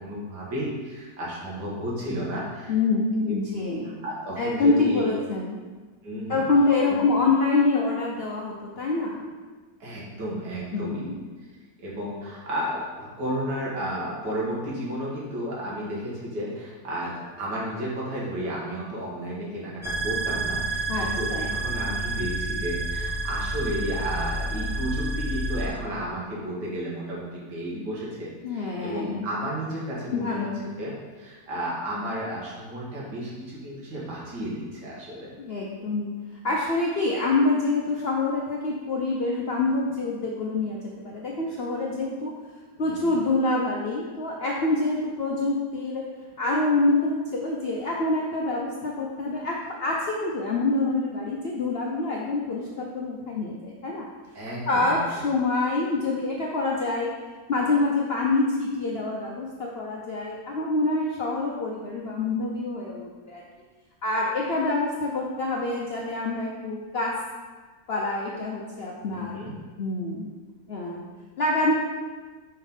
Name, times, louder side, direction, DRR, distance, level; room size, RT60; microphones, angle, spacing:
voice 1, 0.0-2.8 3.2-3.3 4.0-5.2 6.0-6.4 6.8-7.0 9.8-11.0 11.8-30.5 30.8-35.3 42.8-43.1 54.3-55.0 69.0-69.6, equal, 75° right, -6 dB, 2.2 m, -32 dB
voice 2, 2.7-4.0 4.4-5.6 6.3-9.3 10.7-11.2 20.9-21.6 28.4-29.3 30.1-30.6 35.4-36.1 36.4-42.3 42.8-46.0 46.4-54.1 54.7-57.1 57.5-63.4 64.0-67.1 67.9-69.3 69.8-70.3 70.7-71.0 71.4-71.7, left 3 dB, 65° left, -2 dB, 0.6 m, -26 dB
sound 1, 19.8-25.7, right 2 dB, 5° right, 0.4 m, -29 dB
5.3 x 3.9 x 5.3 m, 1.4 s
omnidirectional pair, 1.8 m